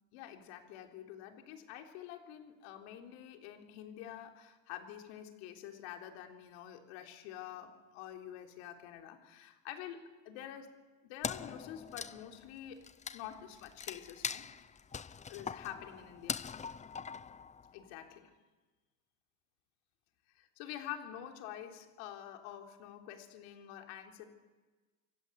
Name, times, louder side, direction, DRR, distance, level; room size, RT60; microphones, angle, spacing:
voice 1, 0.1-10.8 11.0-12.8 13.1-14.5 15.3-16.4 17.7-18.3 20.3-24.2, left 11 dB, 90° left, 4 dB, 3.8 m, -47 dB
Wood, 11.2-17.9, left 6 dB, 20° left, 0.8 m, -42 dB
26.0 x 24.5 x 8.3 m, 1.2 s
cardioid pair, 115°, 31 cm